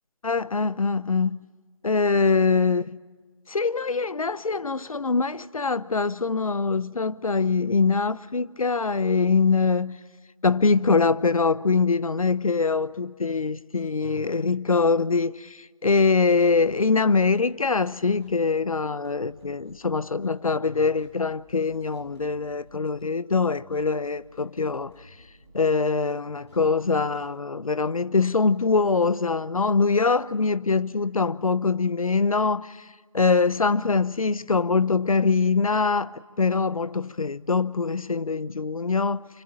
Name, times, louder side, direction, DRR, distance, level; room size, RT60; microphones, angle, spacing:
voice 1, 0.2-1.4 1.8-2.8 3.5-10.0 10.4-24.9 25.5-32.8 33.1-39.3, left 4 dB, 80° left, 0.9 m, -23 dB
sound 1, 16.3-17.5 18.0-20.3 20.8-23.0 23.5-25.8 26.3-27.3, equal, 50° left, 6.4 m, -55 dB
25.5 x 25.0 x 9.0 m
figure-of-eight pair, 175°, 18 cm